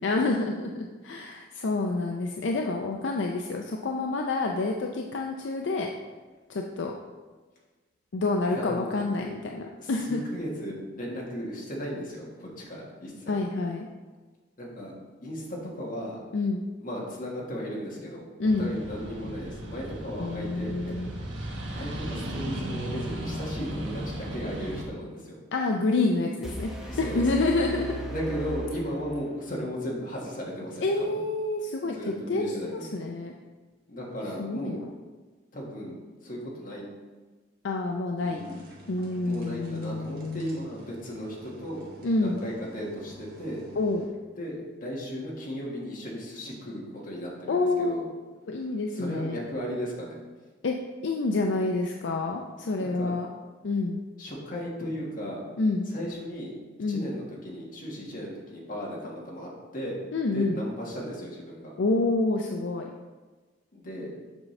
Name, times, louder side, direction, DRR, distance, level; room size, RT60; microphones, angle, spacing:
voice 1, 0.0-5.9 6.5-6.9 8.1-10.2 13.3-13.9 16.3-16.6 18.4-18.7 20.2-21.1 25.5-28.0 30.8-33.3 34.4-34.9 37.6-38.4 38.9-40.7 42.0-42.4 43.8-44.1 47.5-48.1 48.5-49.4 50.6-50.7 51.0-53.3 53.6-54.0 55.6-55.8 56.8-57.1 60.1-60.6 61.8-62.9, left 3 dB, 75° left, 2 dB, 0.5 m, -28 dB
voice 2, 8.5-8.9 9.8-13.4 14.6-14.9 15.2-16.2 16.8-18.2 18.6-20.7 21.7-25.4 26.9-27.3 28.1-31.2 31.8-32.8 33.9-34.8 35.5-36.9 38.2-38.6 39.2-41.8 42.2-43.6 44.4-48.0 48.9-50.2 52.8-53.1 54.2-55.4 55.9-56.5 56.9-60.0 60.3-61.7 63.7-64.1, equal, 50° left, -3 dB, 1.6 m, -36 dB
sound 1, 18.4-24.9, right 1 dB, 90° right, 1.2 m, -36 dB
sound 2, 26.4-29.4, right 1 dB, 5° right, 0.9 m, -36 dB
sound 3, 38.3-44.1, right 1 dB, 55° right, 1.4 m, -50 dB
7.3 x 5.4 x 3.2 m, 1.3 s
head